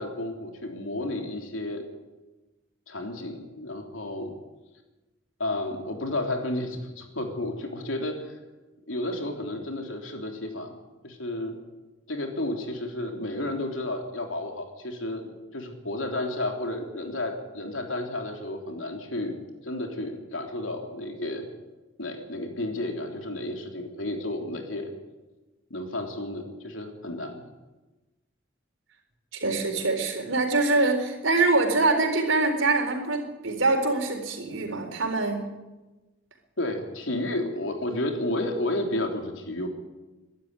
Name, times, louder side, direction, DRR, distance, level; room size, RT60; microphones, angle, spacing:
voice 1, 0.0-1.9 2.9-4.3 5.4-8.3 8.9-10.7 11.0-11.6 12.1-21.5 22.0-24.9 25.7-27.4 36.6-39.7, left 1 dB, 85° left, 3 dB, 3.6 m, -32 dB
voice 2, 29.3-35.5, right 3 dB, 85° right, 4 dB, 4.2 m, -24 dB
23.0 x 12.0 x 9.8 m, 1.1 s
head